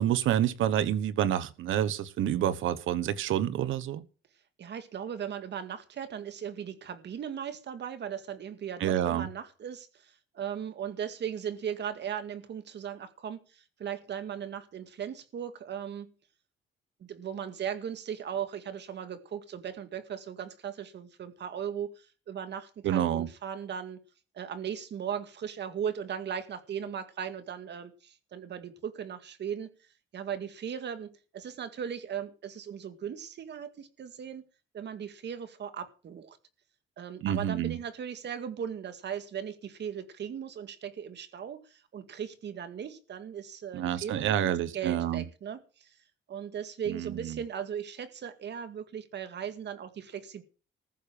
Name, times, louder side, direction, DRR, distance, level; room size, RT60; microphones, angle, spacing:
voice 1, 0.0-4.0 8.8-9.3 22.8-23.3 37.2-37.8 43.7-45.2 46.9-47.4, right 11 dB, 80° right, 1.2 m, -28 dB
voice 2, 4.6-16.1 17.0-24.0 24.3-29.7 30.1-34.4 34.7-36.4 37.0-46.0 46.3-50.4, right 8 dB, 60° right, 2.1 m, -38 dB
14.5 x 6.8 x 8.9 m
cardioid pair, 90°, 20 cm